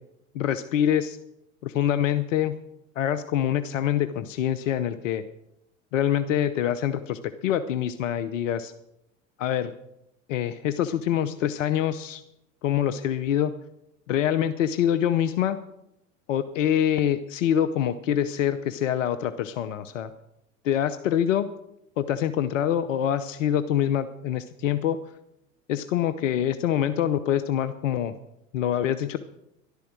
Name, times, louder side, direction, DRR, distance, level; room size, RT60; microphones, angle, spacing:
voice 1, 0.3-1.2 1.6-2.6 3.0-5.2 5.9-8.7 9.4-9.7 10.3-12.2 12.6-13.5 14.1-15.6 16.3-20.1 20.6-21.5 22.0-25.0 25.7-28.2 28.5-29.2, left 10 dB, 70° left, 12 dB, 0.8 m, -25 dB
13.0 x 11.5 x 6.3 m, 0.83 s
figure-of-eight pair, 80°, 40 cm